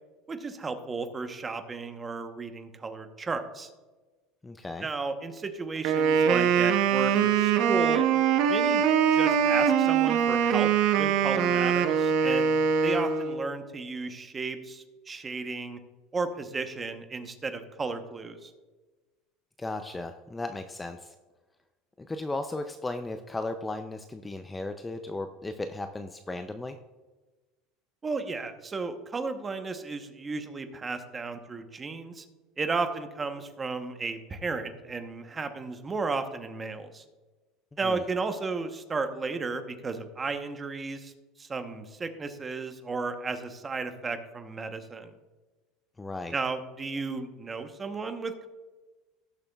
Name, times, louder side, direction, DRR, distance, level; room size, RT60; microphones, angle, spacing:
voice 1, 0.3-3.7 4.8-8.0 8.5-8.8 9.1-10.7 10.9-12.5 12.8-15.8 16.1-18.5 28.0-32.2 32.6-37.0 37.8-41.1 41.4-45.1 46.3-48.5, right 4 dB, 20° right, 8 dB, 0.9 m, -34 dB
voice 2, 4.4-4.9 19.6-21.1 22.0-26.8 37.8-38.0 46.0-46.3, left 2 dB, 10° left, 8 dB, 0.4 m, -36 dB
Wind instrument woodwind instrument, 5.8-13.5, right 7 dB, 60° right, 0.8 m, -23 dB
17.5 x 6.9 x 2.3 m, 1.2 s
supercardioid pair, 135°, 0 cm